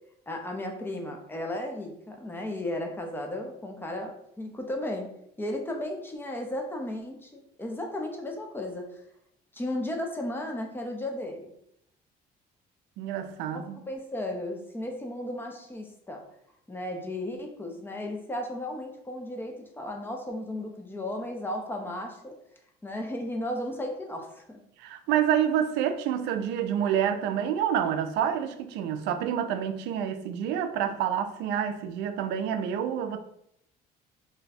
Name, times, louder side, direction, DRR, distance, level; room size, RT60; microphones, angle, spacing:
voice 1, 0.3-5.1 5.4-8.9 9.5-11.5 13.5-16.2 16.7-22.3 22.8-24.6, left 1 dB, 10° left, 0.6 m, -35 dB
voice 2, 13.0-13.8 24.8-33.2, right 9 dB, 90° right, 0.4 m, -28 dB
2.6 x 2.2 x 4.0 m
cardioid pair, 110°, 17 cm